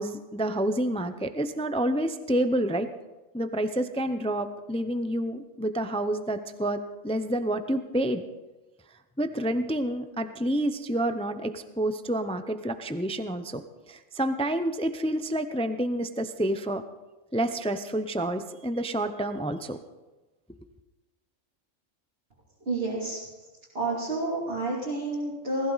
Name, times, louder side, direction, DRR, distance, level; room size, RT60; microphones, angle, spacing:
voice 1, 0.0-2.9 3.3-8.2 9.2-16.8 17.3-19.8, right 1 dB, 10° left, 9 dB, 0.4 m, -28 dB
voice 2, 22.6-23.5 23.7-25.7, right 2 dB, 45° right, -6 dB, 3.3 m, -30 dB
20.0 x 14.5 x 4.1 m, 1.1 s
omnidirectional pair, 1.3 m